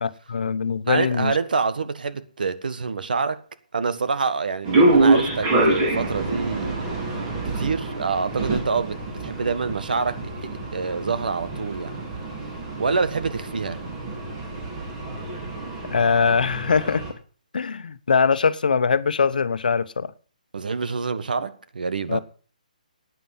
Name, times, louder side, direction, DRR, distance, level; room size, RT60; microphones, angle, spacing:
voice 1, 0.0-1.3 15.9-17.0 17.5-20.1 22.1-22.2, left 5 dB, 75° left, 1.1 m, -22 dB
voice 2, 0.9-3.4 3.7-6.8 7.4-12.0 12.8-13.8 20.5-22.2, right 4 dB, 80° right, 1.5 m, -26 dB
sound 1, 4.6-17.1, right 2 dB, 20° right, 3.3 m, -26 dB
11.5 x 9.2 x 7.4 m
hypercardioid pair, 170°, 5 cm